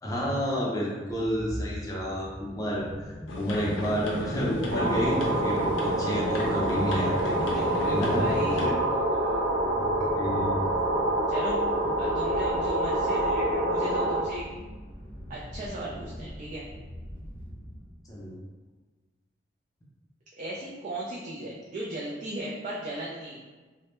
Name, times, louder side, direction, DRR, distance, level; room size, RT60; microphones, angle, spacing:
voice 1, 0.0-7.3 7.9-8.3 8.6-8.7 9.7-9.9 10.1-10.5 18.1-18.3, equal, 20° left, -5 dB, 0.5 m, -30 dB
sound 1, 1.3-18.0, equal, 10° right, 0.8 m, -42 dB
sound 2, 3.3-8.7, left 1 dB, 85° left, 0.5 m, -34 dB
sound 3, 4.7-14.2, right 1 dB, 70° right, 0.8 m, -27 dB
voice 2, 7.5-8.7 11.3-11.6 12.0-14.4 15.3-16.7 20.4-23.4, right 1 dB, 45° right, -5 dB, 0.3 m, -36 dB
2.2 x 2.0 x 2.9 m, 1.3 s
head